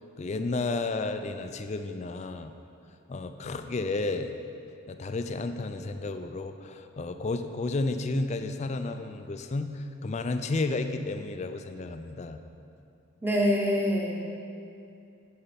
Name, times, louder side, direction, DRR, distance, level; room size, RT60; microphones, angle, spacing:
voice 1, 0.2-2.5 3.1-4.3 4.9-12.4, left 3 dB, 35° left, 8 dB, 0.4 m, -32 dB
voice 2, 13.2-14.3, equal, 10° right, -2 dB, 0.9 m, -25 dB
9.9 x 5.7 x 5.2 m, 2.5 s
head